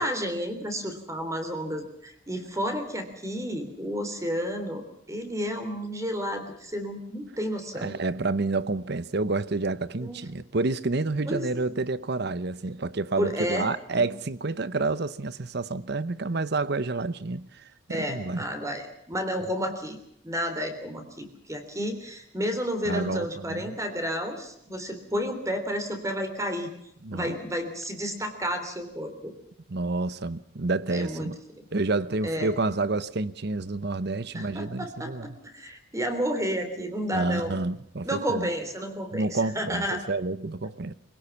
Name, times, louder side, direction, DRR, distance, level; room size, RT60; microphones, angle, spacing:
voice 1, 0.0-7.9 10.0-10.2 11.3-11.5 13.2-14.1 17.9-20.0 20.2-26.7 27.1-29.3 30.9-31.3 32.2-32.5 34.3-37.6 38.0-40.0, equal, 15° right, 3.4 m, -31 dB
voice 2, 7.7-18.4 22.8-23.7 27.0-27.4 29.7-31.4 31.7-35.3 37.1-38.5 39.1-40.9, right 3 dB, 60° right, 0.9 m, -29 dB
25.0 x 17.5 x 7.2 m
head